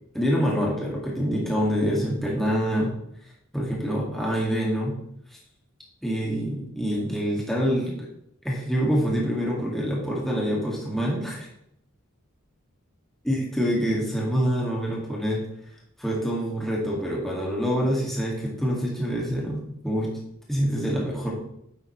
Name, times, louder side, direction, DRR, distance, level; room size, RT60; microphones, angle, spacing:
voice 1, 0.1-2.9 3.5-4.9 6.0-8.0 8.4-11.5 13.2-15.4 16.0-20.1 20.5-21.3, equal, ahead, -4 dB, 2.0 m, -26 dB
10.5 x 7.9 x 3.2 m, 0.74 s
head